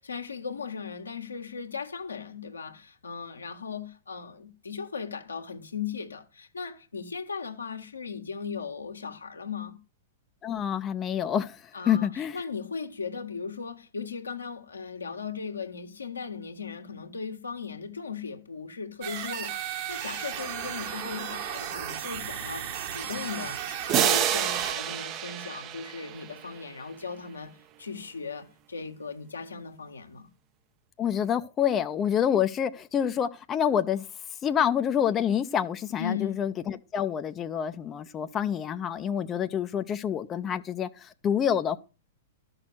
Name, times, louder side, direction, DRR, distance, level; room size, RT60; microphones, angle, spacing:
voice 1, 0.0-9.8 11.7-27.5 27.8-30.3 36.0-36.4, left 5 dB, 90° left, 1.5 m, -37 dB
voice 2, 10.4-12.4 31.0-34.0 34.4-41.8, left 9 dB, 25° left, 0.6 m, -27 dB
sound 1, 19.0-24.7, right 9 dB, 50° right, 1.9 m, -35 dB
sound 2, 23.9-26.6, right 10 dB, 35° right, 0.8 m, -28 dB
12.5 x 6.3 x 6.2 m
hypercardioid pair, 110°, 0 cm